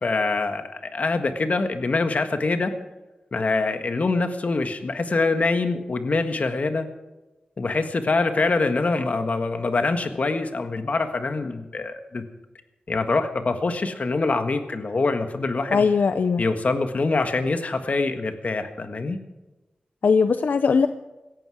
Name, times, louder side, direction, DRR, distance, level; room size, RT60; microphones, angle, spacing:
voice 1, 0.0-2.7 3.3-6.9 7.6-12.2 12.9-15.9 16.4-19.2, left 3 dB, 55° left, 8 dB, 1.6 m, -24 dB
voice 2, 15.7-16.4 20.0-20.9, left 5 dB, 80° left, 10 dB, 0.6 m, -19 dB
17.5 x 14.5 x 4.9 m, 1.1 s
wide cardioid pair, 105°, 3 cm